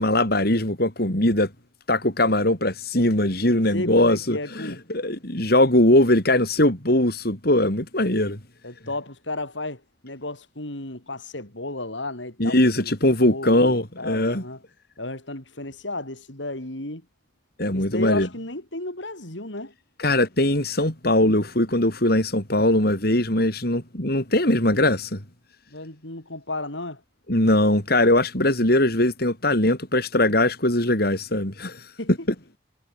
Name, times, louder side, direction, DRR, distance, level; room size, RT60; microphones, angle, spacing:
voice 1, 0.0-1.5 1.9-8.4 12.4-14.4 17.6-18.3 20.0-25.2 27.3-31.9, left 1 dB, 55° left, 5.3 m, -21 dB
voice 2, 3.7-4.8 8.6-12.9 13.3-14.6 15.0-17.0 17.7-19.7 25.7-27.0 32.0-32.3, left 2 dB, 75° left, 6.6 m, -33 dB
head